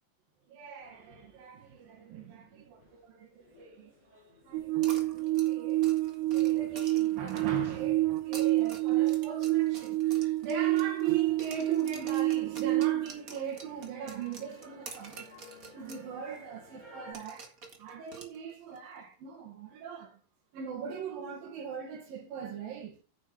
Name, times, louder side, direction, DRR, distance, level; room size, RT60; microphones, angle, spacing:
voice 1, 0.5-3.9 4.4-5.9 6.2-15.3 15.7-17.5 17.8-20.2 20.5-23.0, right 7 dB, 70° right, 3.2 m, -40 dB
sound 1, 0.8-17.1, left 1 dB, 10° right, 4.0 m, -59 dB
sound 2, 4.5-13.1, right 17 dB, 90° right, 2.9 m, -28 dB
sound 3, 4.8-7.7 8.2-11.1 11.4-16.1 16.3-16.4 17.1-18.8, right 3 dB, 40° right, 1.2 m, -48 dB
9.9 x 8.5 x 4.4 m
omnidirectional pair, 4.5 m